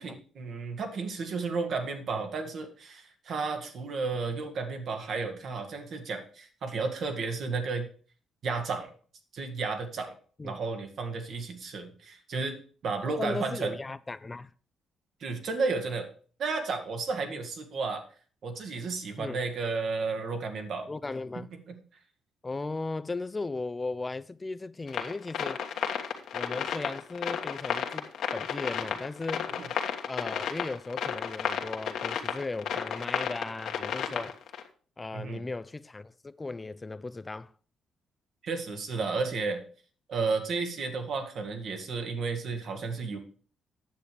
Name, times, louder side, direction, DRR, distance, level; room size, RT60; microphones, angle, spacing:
voice 1, 0.0-7.9 8.4-8.9 9.3-10.1 10.4-12.6 12.8-13.7 15.2-16.1 16.4-18.0 18.4-20.9 21.3-21.8 29.6-29.7 35.1-35.4 38.4-39.6 40.1-43.2, right 4 dB, 60° right, 1.8 m, -32 dB
voice 2, 13.0-14.5 17.3-17.4 19.2-19.4 20.9-21.5 22.4-25.6 26.3-29.5 30.0-34.4 35.0-37.5, left 3 dB, 25° left, 0.4 m, -37 dB
sound 1, 24.9-34.6, left 8 dB, 75° left, 1.4 m, -32 dB
9.3 x 6.9 x 5.0 m
cardioid pair, 90°, 0 cm